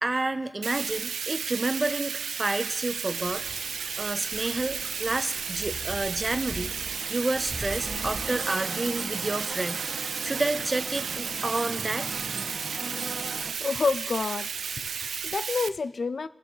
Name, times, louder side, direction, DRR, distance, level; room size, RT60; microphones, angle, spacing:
voice 1, 0.0-3.4 4.0-6.7 7.1-9.8 10.2-12.7, right 2 dB, 30° right, 0.9 m, -30 dB
Bathtub (filling or washing), 0.6-15.7, right 6 dB, 90° right, 0.4 m, -33 dB
sound 1, 3.1-8.3, left 1 dB, 5° left, 2.6 m, -42 dB
sound 2, 4.5-13.5, right 3 dB, 50° right, 1.3 m, -40 dB
voice 2, 13.6-14.5 14.8-16.3, left 4 dB, 60° left, 0.4 m, -29 dB
20.5 x 7.0 x 3.8 m
cardioid pair, 60°, 0 cm